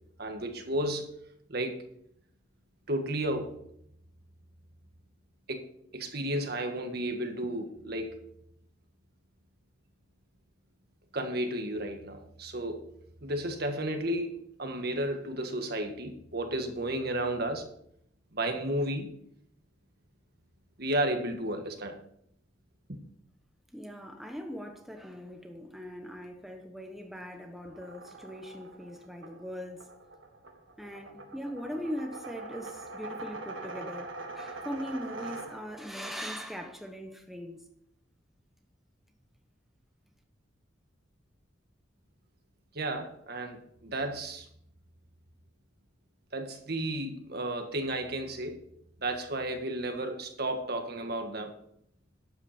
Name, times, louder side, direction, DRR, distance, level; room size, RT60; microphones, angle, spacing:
voice 1, 0.2-1.1 1.5-1.8 2.9-3.6 5.5-5.6 5.9-8.2 11.1-12.9 13.2-17.7 18.3-19.1 20.8-22.0 22.9-23.0 42.7-44.5 46.3-48.6 49.0-51.5, right 1 dB, 55° right, 1.6 m, -33 dB
voice 2, 23.7-29.9 30.8-37.6, equal, ahead, 1.0 m, -40 dB
sound 1, 27.6-36.0, right 3 dB, 85° right, 1.6 m, -43 dB
12.0 x 8.8 x 4.4 m
head